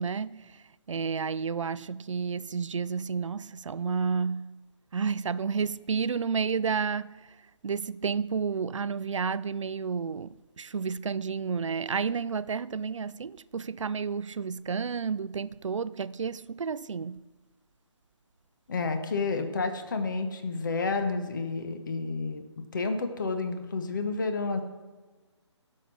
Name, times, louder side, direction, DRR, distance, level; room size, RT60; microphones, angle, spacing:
voice 1, 0.0-4.6 4.9-7.3 7.6-17.2, right 5 dB, 85° right, 0.5 m, -31 dB
voice 2, 18.7-22.4 22.7-24.6, left 4 dB, 40° left, 1.1 m, -30 dB
15.5 x 6.7 x 6.3 m
hypercardioid pair, 170°, 15 cm